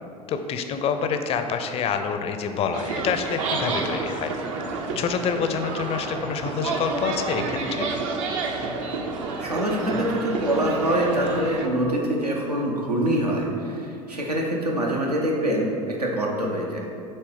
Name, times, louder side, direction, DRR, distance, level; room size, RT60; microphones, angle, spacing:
voice 1, 0.3-4.3 5.0-7.4 7.7-7.9, left 6 dB, 30° left, 7 dB, 0.5 m, -27 dB
sound 1, 2.7-11.7, right 3 dB, 60° right, 0.7 m, -29 dB
voice 2, 9.4-16.8, right 1 dB, 85° right, -2 dB, 0.9 m, -25 dB
7.6 x 3.1 x 4.8 m, 2.6 s
figure-of-eight pair, 75°, 20 cm